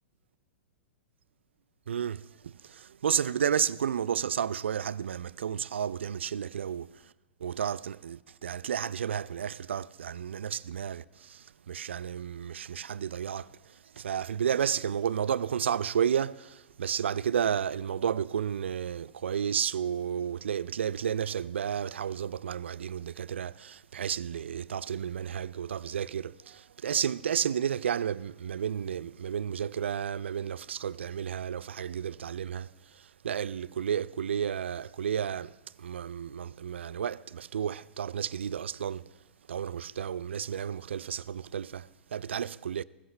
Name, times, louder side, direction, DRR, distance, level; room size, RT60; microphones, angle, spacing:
voice 1, 1.9-7.1 7.4-42.8, right 8 dB, 75° right, 0.4 m, -32 dB
21.0 x 12.5 x 3.3 m
hypercardioid pair, 110°, 6 cm